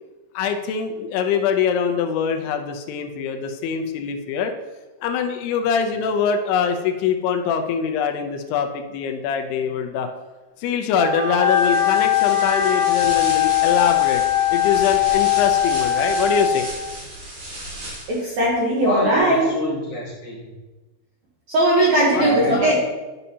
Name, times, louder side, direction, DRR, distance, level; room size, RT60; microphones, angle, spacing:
voice 1, 0.3-4.5 5.0-10.1 10.6-14.2 14.5-16.7 22.1-22.7, left 7 dB, 85° left, 5 dB, 2.6 m, -23 dB
Wind instrument woodwind instrument, 10.9-16.8, left 10 dB, 10° right, 1.0 m, -20 dB
sound 1, 11.4-18.3, right 1 dB, 50° right, 2.8 m, -34 dB
voice 2, 18.1-19.5 21.5-22.8, right 1 dB, 70° right, -5 dB, 1.9 m, -18 dB
voice 3, 18.8-20.4 22.1-22.8, equal, 40° left, -8 dB, 2.7 m, -28 dB
11.0 x 5.4 x 2.8 m, 1.2 s
omnidirectional pair, 4.7 m